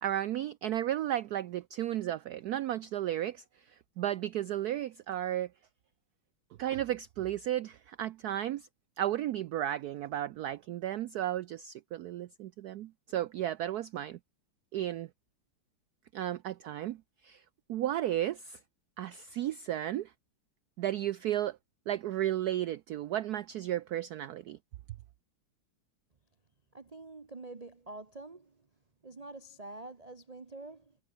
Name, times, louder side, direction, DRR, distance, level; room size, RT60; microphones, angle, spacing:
voice 1, 0.0-5.5 6.6-8.7 9.0-14.2 14.7-15.1 16.1-17.4 17.7-18.6 19.0-20.1 20.8-21.6 21.9-24.6, right 12 dB, 85° right, 0.8 m, -34 dB
voice 2, 26.7-28.7 29.0-31.0, right 2 dB, 40° right, 0.5 m, -46 dB
omnidirectional pair, 2.3 m